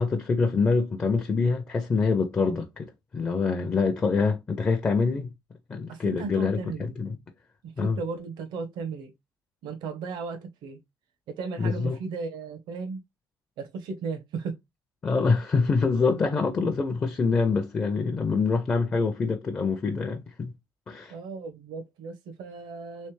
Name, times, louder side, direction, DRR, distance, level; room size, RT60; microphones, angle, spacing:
voice 1, 0.0-5.3 5.7-7.2 7.8-8.0 11.6-12.0 15.0-20.5 20.9-21.1, left 4 dB, 20° left, 0.4 m, -25 dB
voice 2, 5.9-7.0 7.6-9.1 9.6-10.8 11.3-13.0 13.6-14.6 16.1-16.3 21.1-23.1, right 5 dB, 90° right, 0.9 m, -36 dB
3.3 x 3.2 x 3.1 m
cardioid pair, 170°, 7 cm